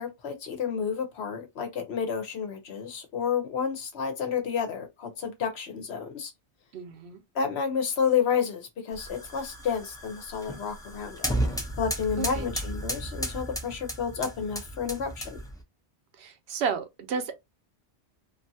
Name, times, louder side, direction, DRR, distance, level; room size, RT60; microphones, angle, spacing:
voice 1, 0.0-6.3 7.3-11.3 11.8-15.4, left 6 dB, 70° left, 1.1 m, -30 dB
voice 2, 6.7-7.2 12.2-12.5 16.2-17.3, right 6 dB, 70° right, 0.9 m, -32 dB
sound 1, 8.9-15.6, right 1 dB, 5° left, 0.5 m, -34 dB
2.7 x 2.5 x 2.6 m
omnidirectional pair, 1.1 m